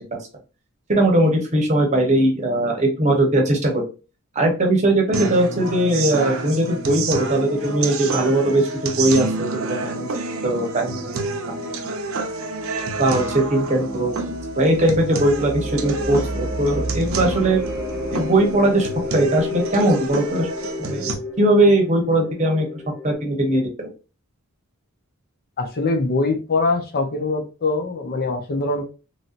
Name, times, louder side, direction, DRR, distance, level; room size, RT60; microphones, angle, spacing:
voice 1, 0.9-3.8 4.3-10.1 10.4-11.9 13.0-17.6 18.1-20.5 20.8-21.1 21.4-22.7 23.0-23.9, right 1 dB, 30° right, 1 dB, 0.9 m, -20 dB
sound 1, 5.1-21.1, right 3 dB, 65° right, 0.6 m, -29 dB
sound 2, 12.8-23.1, left 1 dB, 5° left, 1.4 m, -32 dB
voice 2, 25.6-28.8, left 3 dB, 45° left, 5 dB, 0.5 m, -23 dB
3.1 x 2.7 x 2.4 m, 0.32 s
head